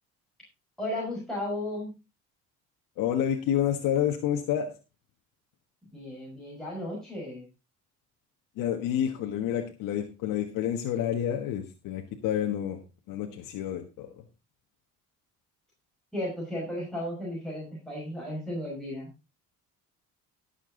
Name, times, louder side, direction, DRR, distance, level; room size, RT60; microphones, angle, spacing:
voice 1, 0.8-1.9 5.9-7.4 16.1-19.1, left 1 dB, ahead, -5 dB, 6.0 m, -34 dB
voice 2, 3.0-4.7 8.6-12.8 13.1-14.2, left 10 dB, 85° left, 3 dB, 1.5 m, -29 dB
18.0 x 7.3 x 3.9 m, 0.27 s
cardioid pair, 120°, 32 cm